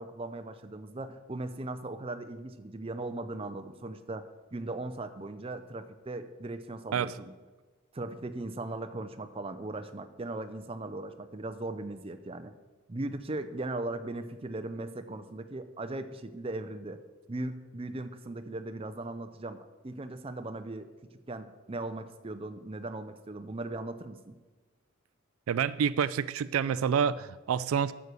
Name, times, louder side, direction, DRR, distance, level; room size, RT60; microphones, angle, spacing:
voice 1, 0.0-7.3 7.9-12.5 12.9-17.0 17.3-20.9 21.3-24.4, right 2 dB, 25° right, 9 dB, 0.5 m, -38 dB
voice 2, 25.5-27.9, right 7 dB, 90° right, 16 dB, 0.3 m, -28 dB
9.3 x 6.3 x 6.8 m, 1.3 s
head